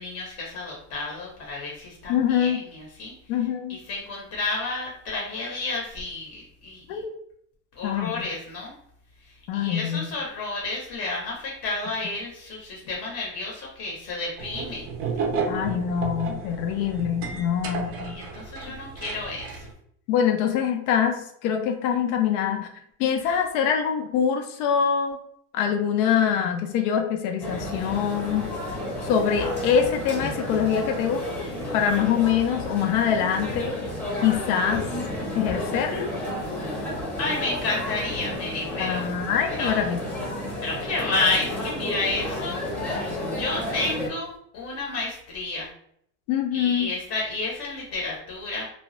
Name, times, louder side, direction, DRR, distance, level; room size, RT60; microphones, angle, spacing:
voice 1, 0.0-3.1 3.7-7.0 7.8-8.7 9.5-14.8 18.0-19.6 37.2-39.1 39.5-39.9 40.6-42.6 43.4-45.7 46.5-48.7, left 3 dB, 35° left, -2 dB, 0.8 m, -31 dB
voice 2, 2.1-2.6 3.3-3.8 6.9-7.2 7.8-8.2 9.5-10.0 15.5-18.2 20.1-22.7 23.0-25.2 25.5-28.5 29.0-31.3 31.7-33.8 34.2-34.9 35.4-36.1 38.8-40.0 46.3-46.9, left 8 dB, 75° left, 5 dB, 0.6 m, -24 dB
sound 1, 14.4-19.7, right 4 dB, 30° right, 0.4 m, -32 dB
sound 2, 27.4-44.1, left 1 dB, 5° left, 0.8 m, -31 dB
2.8 x 2.2 x 3.0 m, 0.68 s
cardioid pair, 155°, 43 cm